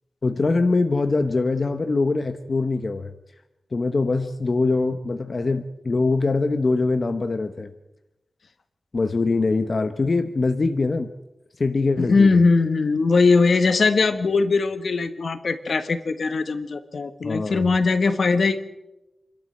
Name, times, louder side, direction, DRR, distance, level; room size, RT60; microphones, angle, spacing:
voice 1, 0.2-3.1 3.7-7.7 8.9-11.1 11.6-12.4 17.2-17.7, left 3 dB, 50° left, 8 dB, 1.0 m, -23 dB
voice 2, 12.0-18.6, left 4 dB, 70° left, 10 dB, 1.4 m, -20 dB
27.0 x 13.0 x 7.9 m, 0.94 s
wide cardioid pair, 110°, 0 cm